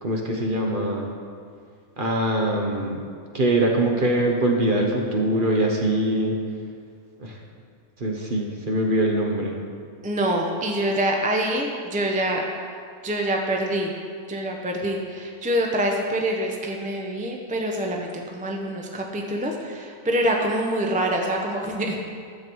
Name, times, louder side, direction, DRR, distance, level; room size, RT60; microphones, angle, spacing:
voice 1, 0.0-1.1 2.0-3.0 3.3-6.4 7.2-7.3 8.0-9.6, right 1 dB, 40° right, 1 dB, 1.1 m, -23 dB
voice 2, 10.0-12.4 13.0-13.9 14.3-22.0, right 1 dB, 10° right, 1 dB, 0.5 m, -25 dB
11.5 x 7.8 x 4.6 m, 2.2 s
omnidirectional pair, 1.6 m